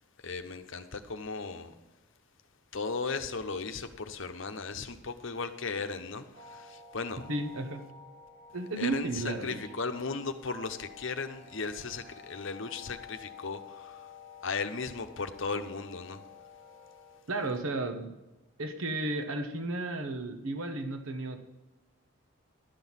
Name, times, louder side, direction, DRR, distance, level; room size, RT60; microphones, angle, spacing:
voice 1, 0.2-1.7 2.7-7.2 8.8-14.1 14.4-16.2, left 4 dB, 65° left, 0.9 m, -36 dB
sound 1, 6.3-17.2, left 5 dB, 35° right, 1.9 m, -51 dB
voice 2, 7.3-7.9 8.5-9.6 17.3-18.1 18.6-21.4, right 2 dB, 80° right, 1.1 m, -33 dB
11.5 x 6.1 x 7.2 m
head